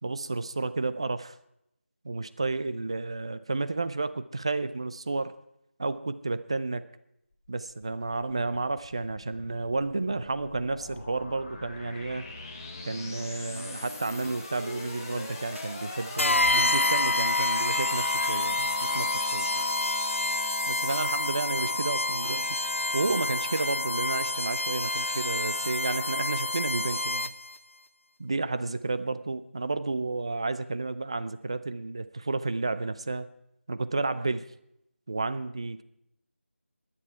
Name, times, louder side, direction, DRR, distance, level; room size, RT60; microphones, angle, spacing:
voice 1, 0.0-1.4 2.0-5.3 5.8-6.8 7.5-12.2 12.9-19.5 20.7-22.4 22.9-27.3 28.2-33.3 33.7-34.4 35.1-35.8, right 3 dB, 25° right, 13 dB, 0.5 m, -31 dB
sound 1, 7.5-22.1, left 2 dB, 20° left, 1.2 m, -41 dB
sound 2, 13.6-13.9 14.2-14.5 14.9-15.0 15.6-15.7 16.2-16.6 16.9-17.2 17.6-17.7 18.2-18.4 18.9-19.2 19.6-19.9 20.2-20.3 20.9-21.1 21.6-21.9 22.2-22.6 22.9-23.0 23.6-23.7, right 1 dB, 85° right, 2.4 m, -48 dB
sound 3, 16.2-27.6, left 2 dB, 80° left, 0.5 m, -28 dB
22.0 x 9.9 x 4.6 m, 0.79 s
figure-of-eight pair, 170°, 7 cm